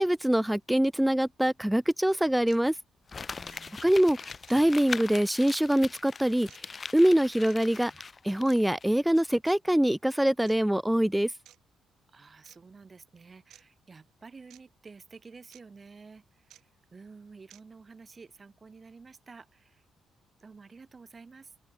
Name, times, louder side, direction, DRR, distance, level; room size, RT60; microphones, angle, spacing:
voice 1, 0.0-2.7 3.8-6.5 6.9-7.9 8.2-11.3, right 1 dB, 5° right, 0.7 m, -24 dB
sound 1, 2.5-2.6 3.4-3.6 4.5-4.6 5.5-5.6 6.5-6.6 7.4-7.6 8.4-8.6 9.4-9.6 10.4-10.6 11.4-11.6 12.4-12.6 13.5-13.6 14.5-14.6 15.5-15.6 16.5-16.6 17.5-17.6, right 12 dB, 75° right, 4.2 m, -55 dB
Crumpling crinkling, 3.1-8.8 9.2-9.3, left 5 dB, 35° left, 1.4 m, -41 dB
voice 2, 3.4-3.8 12.1-19.9 20.4-21.5, right 4 dB, 30° right, 6.0 m, -51 dB
open air
cardioid pair, 90°, 0 cm